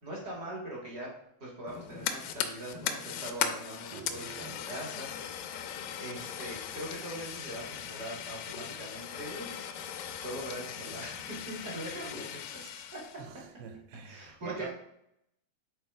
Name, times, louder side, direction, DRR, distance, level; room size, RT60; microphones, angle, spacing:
voice 1, 0.0-1.1 1.4-5.1 6.0-9.5 10.2-12.6 12.9-13.2 14.0-14.7, right 1 dB, 45° right, 1.3 m, -41 dB
Fire, 1.7-13.2, left 9 dB, 80° left, 2.1 m, -38 dB
voice 2, 3.9-4.7 12.6-12.7 13.2-14.7, right 7 dB, 80° right, 2.6 m, -45 dB
9.9 x 4.3 x 3.4 m
omnidirectional pair, 4.5 m